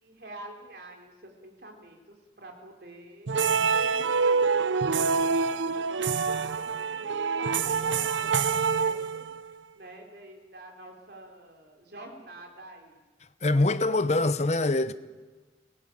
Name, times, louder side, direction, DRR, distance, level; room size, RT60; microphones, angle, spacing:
voice 1, 0.0-3.3 3.7-9.3 9.8-13.0, right 2 dB, 55° right, 4.1 m, -46 dB
sound 1, 3.3-9.5, right 5 dB, 90° right, 0.6 m, -26 dB
voice 2, 13.4-14.9, left 2 dB, 35° left, 0.9 m, -24 dB
23.5 x 17.5 x 9.2 m
head